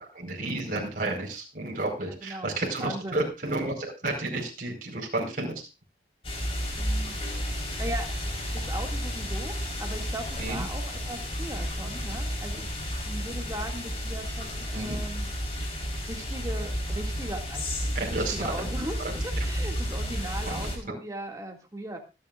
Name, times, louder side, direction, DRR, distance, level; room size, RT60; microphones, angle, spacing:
voice 1, 0.1-5.5 10.4-10.6 14.7-15.0 18.0-18.3, right 2 dB, 45° right, -1 dB, 4.7 m, -31 dB
voice 2, 2.0-3.3 6.7-7.2 7.8-8.1 8.5-9.5 9.8-12.7 13.0-15.3 16.0-17.8 18.1-22.0, right 1 dB, 20° right, 2 dB, 2.3 m, -38 dB
sound 1, 6.2-20.8, equal, 30° left, 4.2 m, -32 dB
25.5 x 9.5 x 2.5 m, 0.28 s
head